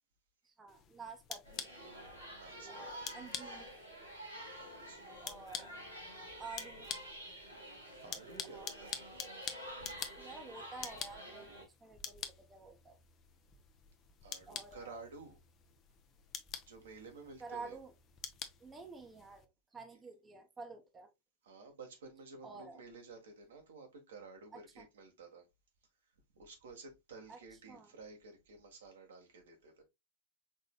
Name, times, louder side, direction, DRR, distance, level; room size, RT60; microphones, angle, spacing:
voice 1, 0.4-1.7 2.7-3.7 5.2-5.7 6.4-6.9 8.4-8.9 10.1-11.6 11.8-13.0 14.5-15.0 17.4-17.9 18.6-21.1 22.4-22.8 24.8-24.9 27.3-27.4 27.7-27.9, right 4 dB, 15° right, 1.0 m, -50 dB
sound 1, 0.7-19.5, left 7 dB, 30° left, 0.7 m, -48 dB
sound 2, 1.4-11.6, equal, 80° right, 3.1 m, -49 dB
voice 2, 2.2-3.2 4.6-5.2 8.0-9.0 14.2-15.4 16.7-17.8 21.4-25.5 26.3-29.8, right 4 dB, 65° right, 1.4 m, -53 dB
5.3 x 4.0 x 2.3 m
figure-of-eight pair, 90°, 0 cm